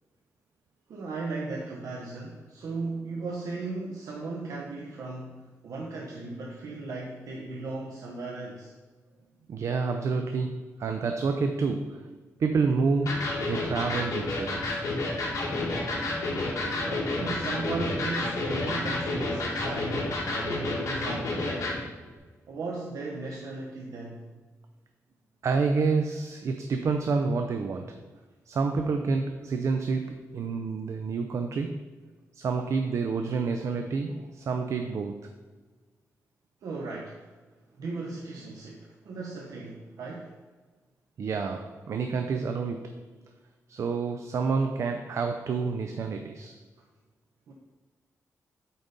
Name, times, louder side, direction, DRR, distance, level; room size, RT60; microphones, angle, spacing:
voice 1, 0.9-8.7 16.5-21.8 22.5-24.3 36.6-37.2 37.7-40.4 47.5-47.6, right 3 dB, 85° right, -2 dB, 0.9 m, -37 dB
voice 2, 9.5-14.8 25.4-28.1 28.5-31.8 32.3-35.2 41.2-43.1 43.7-46.6, right 4 dB, 60° right, 6 dB, 0.5 m, -29 dB
Electric guitar, 13.1-21.8, left 2 dB, 70° left, 2.1 m, -30 dB
8.3 x 4.0 x 5.1 m, 1.4 s
wide cardioid pair, 150°, 6 cm